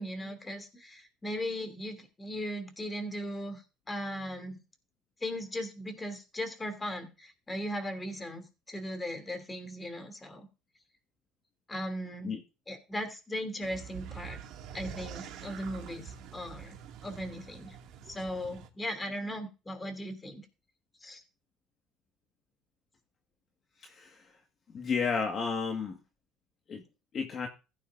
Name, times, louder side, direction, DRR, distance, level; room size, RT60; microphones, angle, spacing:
voice 1, 0.0-3.6 3.9-4.6 5.2-10.5 11.7-12.4 12.7-14.4 14.7-16.7 17.0-17.8 18.1-20.4 21.0-21.2, equal, 15° left, 7 dB, 3.0 m, -38 dB
sound 1, 13.6-18.7, right 8 dB, 65° right, 2.4 m, -46 dB
voice 2, 23.8-24.2 24.7-26.0 26.7-26.8 27.1-27.5, left 5 dB, 40° left, 3 dB, 1.8 m, -32 dB
15.5 x 9.2 x 2.7 m, 0.31 s
supercardioid pair, 105°, 0 cm